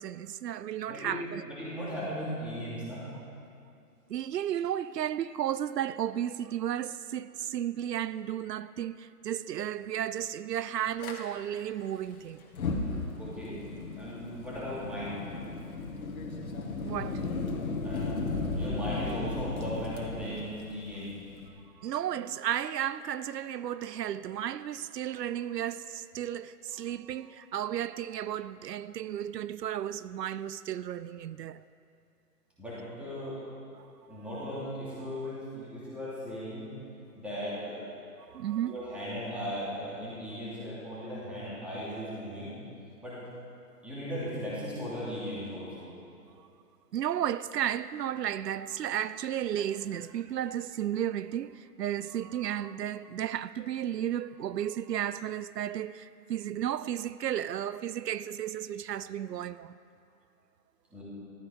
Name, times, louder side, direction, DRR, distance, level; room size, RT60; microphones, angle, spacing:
voice 1, 0.0-1.4 4.1-12.4 16.8-17.2 21.8-31.6 33.8-33.9 34.1-34.2 35.1-35.3 38.3-38.8 46.4-46.5 46.9-59.7, right 10 dB, 85° right, 0.6 m, -33 dB
voice 2, 0.9-3.1 13.2-13.6 14.0-15.2 17.8-18.2 18.5-21.1 32.6-33.4 34.1-36.7 37.1-37.8 38.6-42.5 43.0-43.2 43.8-45.9 60.9-61.0, equal, 5° right, 2.8 m, -37 dB
Fire, 11.0-11.1 12.4-21.5, left 3 dB, 60° left, 2.3 m, -35 dB
14.5 x 13.5 x 5.3 m
hypercardioid pair, 165°, 47 cm